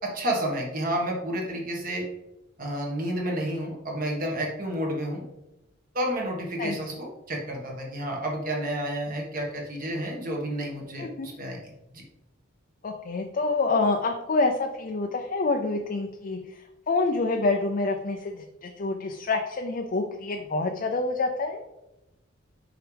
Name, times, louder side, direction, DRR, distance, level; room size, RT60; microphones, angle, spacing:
voice 1, 0.0-2.0 2.6-5.2 5.9-12.0, right 1 dB, 45° right, -1 dB, 1.6 m, -30 dB
voice 2, 11.0-11.3 12.8-21.6, left 3 dB, 45° left, 4 dB, 0.5 m, -27 dB
6.2 x 4.8 x 3.4 m, 0.93 s
head